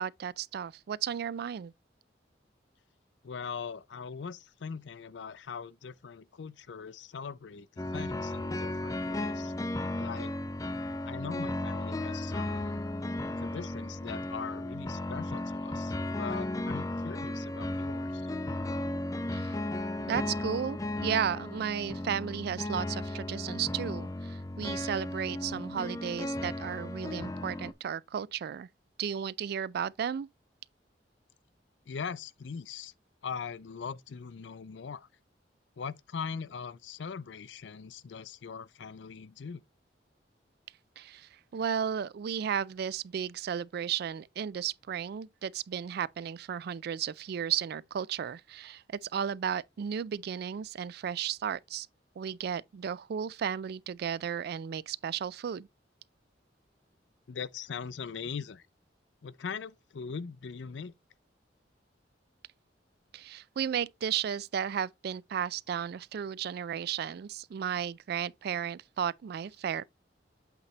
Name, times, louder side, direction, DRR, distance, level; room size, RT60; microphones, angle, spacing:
voice 1, 0.0-1.7 19.3-19.6 20.0-28.7 29.0-30.3 41.0-51.9 52.2-55.7 63.1-69.8, right 8 dB, 60° right, 0.3 m, -34 dB
voice 2, 3.2-9.5 10.0-10.3 11.0-12.8 13.4-18.3 31.9-32.9 33.2-35.1 35.8-39.6 57.3-58.6 59.2-60.9, left 6 dB, 75° left, 0.5 m, -41 dB
sound 1, 7.8-27.7, left 1 dB, 20° left, 0.5 m, -35 dB
8.2 x 3.3 x 3.9 m
head